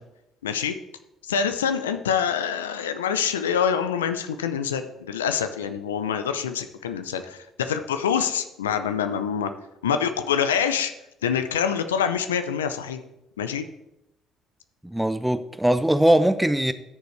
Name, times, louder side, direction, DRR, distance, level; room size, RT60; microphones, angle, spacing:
voice 1, 0.4-0.7 1.3-9.5 9.8-10.9 11.2-13.0 13.4-13.6, left 7 dB, 85° left, 0.6 m, -25 dB
voice 2, 14.8-16.7, right 1 dB, 5° right, 0.8 m, -21 dB
13.5 x 6.8 x 3.2 m
hypercardioid pair, 50°, 0 cm